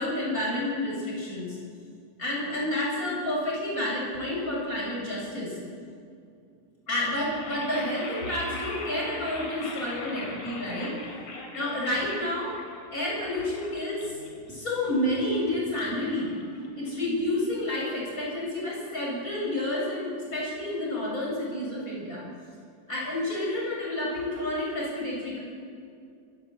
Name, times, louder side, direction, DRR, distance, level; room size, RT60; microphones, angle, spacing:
voice 1, 0.0-1.6 2.2-5.5 6.9-10.9 11.5-12.6 12.9-14.2 14.5-16.3 16.7-22.2 22.9-25.4, left 1 dB, 15° left, -4 dB, 7.9 m, -30 dB
sound 1, 7.2-17.3, left 3 dB, 45° left, 3.7 m, -41 dB
28.5 x 15.5 x 8.2 m, 2.4 s
omnidirectional pair, 5.7 m